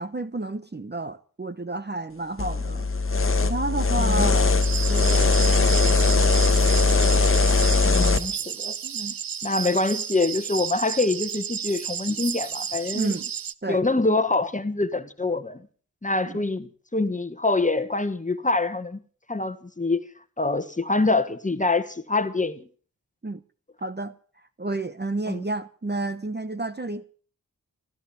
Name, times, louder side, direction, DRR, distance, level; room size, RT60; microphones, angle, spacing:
voice 1, 0.0-4.6 4.9-6.6 8.8-9.2 12.9-13.3 13.6-13.8 16.3-16.4 23.2-23.4 23.8-24.1 24.6-27.0, right 2 dB, 30° right, 0.9 m, -31 dB
sound 1, 2.4-8.2, left 3 dB, 40° left, 1.2 m, -20 dB
voice 2, 4.0-4.3 7.8-8.7 9.4-13.1 13.7-15.7 16.0-19.0 19.3-20.0 20.4-22.7 25.3-25.4, left 3 dB, 20° left, 1.4 m, -25 dB
sound 2, 4.6-13.5, right 8 dB, 75° right, 0.7 m, -32 dB
14.5 x 13.5 x 7.1 m
wide cardioid pair, 95°, 34 cm